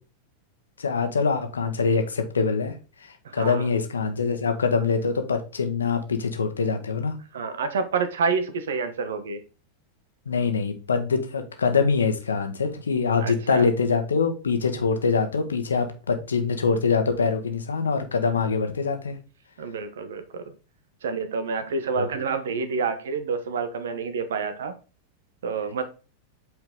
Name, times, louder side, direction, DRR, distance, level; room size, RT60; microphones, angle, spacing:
voice 1, 0.8-2.7 3.0-7.2 10.2-19.2 21.9-22.0, left 5 dB, 70° left, 1.3 m, -24 dB
voice 2, 3.2-3.7 7.3-9.4 13.2-13.7 19.6-20.5 21.0-24.7 25.4-25.8, right 5 dB, 60° right, 1.0 m, -28 dB
7.9 x 4.5 x 3.8 m
figure-of-eight pair, 90°, 0 cm